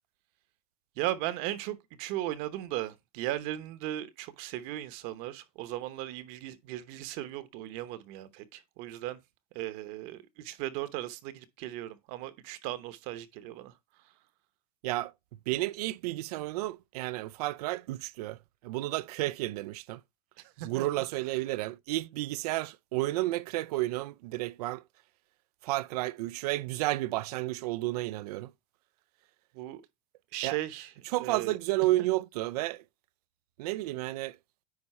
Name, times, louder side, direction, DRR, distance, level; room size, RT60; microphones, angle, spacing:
voice 1, 1.0-9.2 9.5-13.7 20.4-20.9 29.5-29.8 30.3-30.9 31.2-31.6, right 14 dB, 50° right, 0.9 m, -37 dB
voice 2, 15.5-18.4 18.6-20.0 20.6-24.8 25.6-28.5 30.4-30.6 31.1-32.8 33.6-34.4, right 18 dB, 85° right, 0.5 m, -31 dB
9.7 x 4.2 x 4.2 m
supercardioid pair, 155°, 19 cm